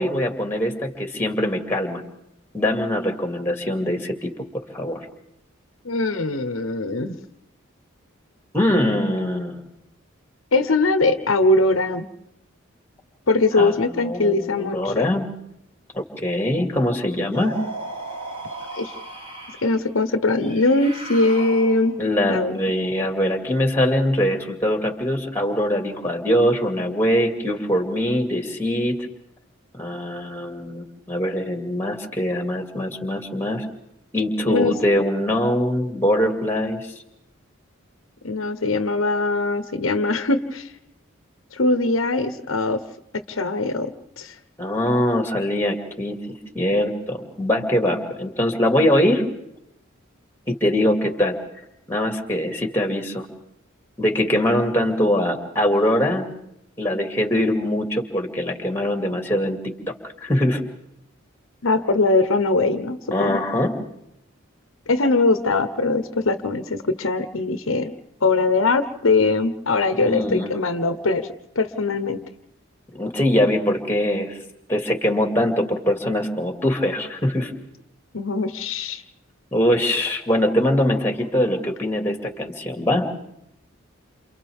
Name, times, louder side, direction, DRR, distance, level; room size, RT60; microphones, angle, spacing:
voice 1, 0.0-2.0 2.5-4.3 4.7-5.0 8.5-9.6 13.6-15.3 15.9-17.5 22.0-29.0 29.7-33.7 34.1-36.9 44.6-46.2 46.5-49.2 50.5-51.4 51.9-53.2 54.0-56.3 56.8-59.6 60.2-60.6 63.1-63.7 69.9-70.5 72.9-74.3 74.7-77.5 79.5-83.0, left 1 dB, 10° left, 3 dB, 2.5 m, -22 dB
voice 2, 5.8-7.2 10.5-12.1 13.3-15.1 18.8-18.9 19.6-22.0 22.2-22.5 34.5-34.7 38.2-40.7 41.5-42.8 43.3-44.3 61.6-63.4 64.9-67.9 68.2-71.3 71.5-72.2 78.1-79.0, left 3 dB, 80° left, 10 dB, 1.0 m, -21 dB
sound 1, 17.3-19.8 20.4-22.1, right 2 dB, 30° right, 4.3 m, -36 dB
29.5 x 28.0 x 3.6 m, 0.80 s
head